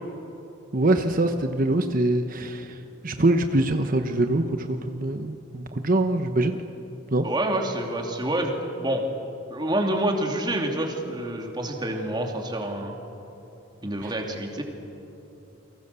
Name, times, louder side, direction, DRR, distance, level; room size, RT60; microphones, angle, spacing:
voice 1, 0.7-2.7 3.0-6.6 7.1-7.2 14.0-14.1, right 2 dB, 45° right, 6 dB, 1.1 m, -23 dB
voice 2, 7.2-8.5 8.8-9.0 9.5-13.0 13.8-14.6, right 1 dB, 25° right, 2 dB, 3.0 m, -27 dB
30.0 x 23.5 x 7.0 m, 3.0 s
head